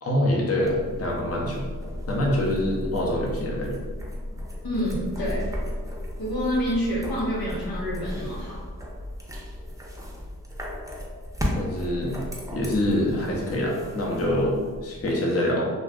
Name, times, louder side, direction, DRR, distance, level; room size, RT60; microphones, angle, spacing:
voice 1, 0.0-1.7 2.1-3.8 11.6-12.2 12.5-14.6 14.8-15.7, left 1 dB, 40° left, -2 dB, 0.7 m, -25 dB
sound 1, 0.6-15.1, left 1 dB, 10° right, 0.6 m, -35 dB
voice 2, 4.6-5.5 6.2-8.6, equal, 85° left, -5 dB, 0.9 m, -28 dB
2.4 x 2.2 x 3.5 m, 1.5 s
cardioid pair, 40°, 35 cm